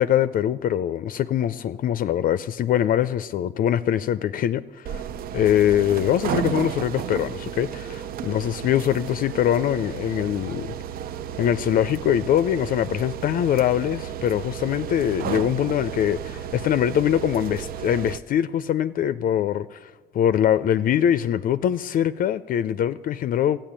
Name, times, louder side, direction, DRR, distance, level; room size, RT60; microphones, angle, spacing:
voice 1, 0.0-5.0 5.3-10.7 11.4-23.6, left 10 dB, 55° left, 0.5 m, -23 dB
sound 1, 4.9-18.2, right 10 dB, 60° right, 0.5 m, -33 dB
13.5 x 8.8 x 8.8 m
cardioid pair, 110°, 17 cm